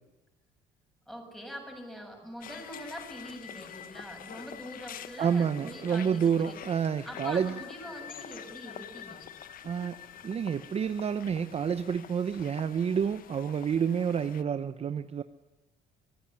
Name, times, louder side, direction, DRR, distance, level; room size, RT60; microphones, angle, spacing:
voice 1, 1.1-6.6 7.0-9.3, equal, ahead, 2 dB, 7.0 m, -44 dB
sound 1, 2.4-14.4, left 10 dB, 55° left, 1.1 m, -46 dB
voice 2, 5.2-7.5 9.6-9.9 10.2-15.2, right 7 dB, 35° right, 11 dB, 0.8 m, -29 dB
24.5 x 16.0 x 10.0 m, 0.94 s
cardioid pair, 110°, 17 cm